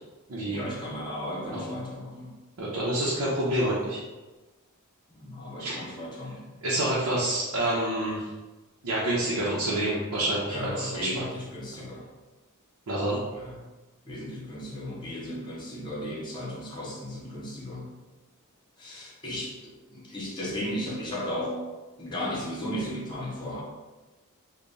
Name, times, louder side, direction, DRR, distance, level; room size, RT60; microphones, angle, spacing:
voice 1, 0.5-2.4 5.1-6.4 10.5-12.1 13.3-13.5 14.0-17.9 18.8-21.6 22.0-23.6, left 1 dB, 20° left, -5 dB, 0.7 m, -35 dB
voice 2, 2.6-4.0 5.6-5.7 6.6-8.2 8.8-11.2 11.8-11.9 12.9-13.2, right 1 dB, 80° right, -7 dB, 0.8 m, -28 dB
3.4 x 2.2 x 3.9 m, 1.2 s
head